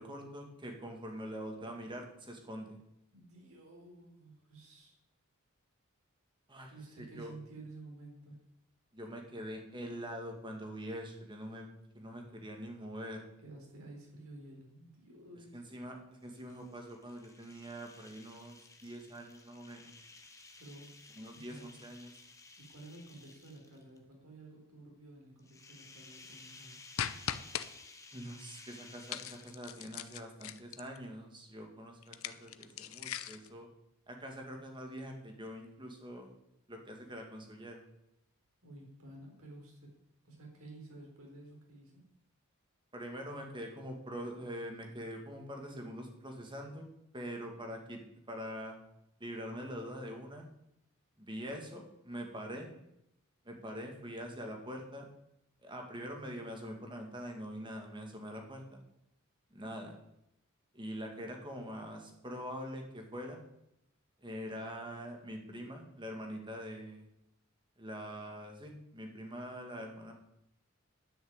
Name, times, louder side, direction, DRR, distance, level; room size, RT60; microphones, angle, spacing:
voice 1, 0.0-2.8 6.5-7.3 8.9-11.7 11.9-13.2 15.5-19.9 21.2-22.2 28.1-33.7 34.1-36.3 36.7-37.9 42.9-46.9 47.1-48.0 48.3-48.8 49.2-50.5 51.2-52.7 53.4-55.1 55.6-58.8 59.5-60.0 60.7-63.4 64.2-67.1 67.8-70.1, equal, 20° right, 2 dB, 2.2 m, -44 dB
voice 2, 3.1-5.0 6.7-8.4 13.4-15.6 20.6-20.9 21.3-21.7 22.6-26.8 38.6-39.9 40.2-42.0, right 2 dB, 80° right, 0 dB, 4.2 m, -52 dB
sound 1, 16.2-24.0 25.4-29.9, left 3 dB, 15° left, 1.3 m, -56 dB
sound 2, 27.0-27.7 29.1-31.0 32.0-33.5, left 9 dB, 70° left, 0.7 m, -39 dB
10.5 x 6.4 x 8.9 m, 0.81 s
head